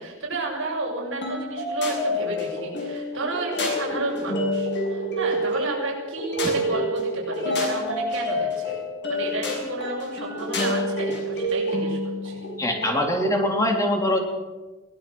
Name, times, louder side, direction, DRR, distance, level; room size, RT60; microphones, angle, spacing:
voice 1, 0.0-12.4, right 2 dB, 60° right, -4 dB, 7.0 m, -32 dB
sound 1, 1.2-13.4, left 1 dB, 55° left, 6.8 m, -28 dB
voice 2, 12.6-14.2, left 1 dB, 15° left, 2 dB, 3.8 m, -23 dB
23.0 x 18.0 x 6.4 m, 1.2 s
head